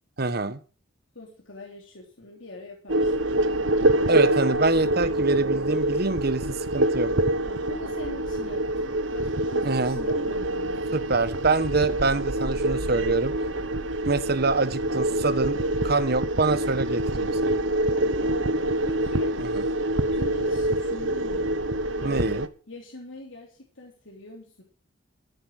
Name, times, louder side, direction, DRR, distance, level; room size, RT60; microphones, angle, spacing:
voice 1, 0.2-0.6 4.1-7.2 9.6-10.0 10.9-13.4 14.0-15.6 15.8-17.6 19.5-19.6 22.0-22.5, right 3 dB, 55° right, 1.2 m, -25 dB
voice 2, 1.2-3.1 7.4-10.8 18.2-18.5 18.8-19.6 20.1-21.6 22.0-24.6, left 1 dB, 80° left, 3.5 m, -43 dB
sound 1, 2.9-22.5, right 1 dB, 75° right, 1.1 m, -26 dB
13.5 x 10.5 x 6.3 m
head